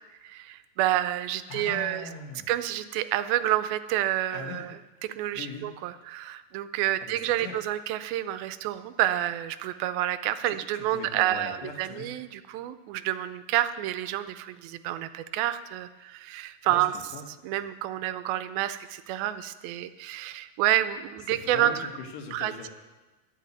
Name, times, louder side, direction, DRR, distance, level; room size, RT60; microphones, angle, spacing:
voice 1, 0.2-2.1 2.5-4.7 5.2-16.9 17.4-21.9 22.3-22.7, right 13 dB, 85° right, 12 dB, 2.4 m, -29 dB
voice 2, 1.5-2.5 4.3-4.7 5.3-5.7 7.0-7.6 10.5-12.1 16.6-16.9 17.1-17.2 21.3-22.7, left 4 dB, 65° left, 3 dB, 2.6 m, -40 dB
11.5 x 7.0 x 9.3 m, 1.2 s
omnidirectional pair, 4.3 m